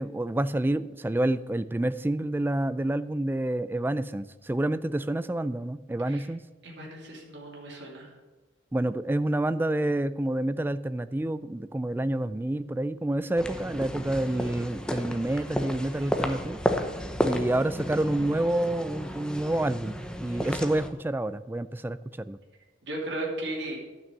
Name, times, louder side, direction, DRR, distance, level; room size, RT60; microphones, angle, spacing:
voice 1, 0.0-6.4 8.7-16.6 17.2-22.4, right 1 dB, 10° right, 14 dB, 0.3 m, -28 dB
voice 2, 6.6-8.1 22.9-23.8, right 1 dB, 65° right, -2 dB, 2.6 m, -35 dB
sound 1, 13.4-20.9, equal, 5° left, 0.7 m, -32 dB
11.0 x 6.1 x 7.3 m, 1.2 s
head